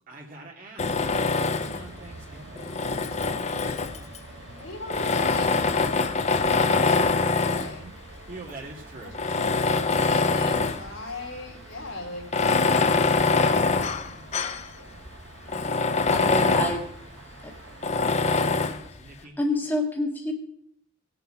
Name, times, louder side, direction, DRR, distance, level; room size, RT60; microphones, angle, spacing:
voice 1, 0.1-2.8 8.3-9.2 15.4-16.7 18.5-19.4, right 2 dB, 40° right, -2 dB, 2.5 m, -45 dB
Tools, 0.8-1.9 2.6-4.2 4.9-7.8 8.5-8.6 9.1-10.9 11.2-11.3 12.2-14.7 15.1-15.2 15.5-16.9 17.8-18.8, left 4 dB, 30° left, 0.6 m, -24 dB
sound 1, 1.7-18.4, right 2 dB, 60° right, 1.3 m, -46 dB
voice 2, 4.6-6.0 6.4-7.9 9.0-12.3 14.6-15.0, left 2 dB, 75° left, 0 dB, 3.1 m, -39 dB
voice 3, 16.1-16.8 17.4-17.5 19.4-20.3, left 1 dB, 10° left, 0 dB, 1.8 m, -27 dB
18.5 x 6.9 x 5.0 m, 0.69 s
head